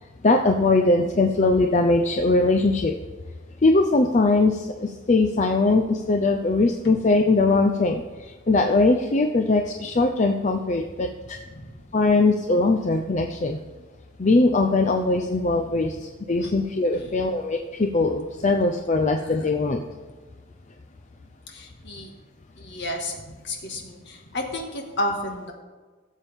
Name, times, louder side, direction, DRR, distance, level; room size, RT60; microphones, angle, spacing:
voice 1, 0.2-2.9 3.6-8.0 8.5-11.4 11.9-13.6 14.2-19.8, left 3 dB, 35° left, 4 dB, 0.6 m, -21 dB
voice 2, 21.5-22.1 22.6-25.5, left 1 dB, 60° left, 1 dB, 1.9 m, -32 dB
16.5 x 7.3 x 3.6 m, 1.4 s
head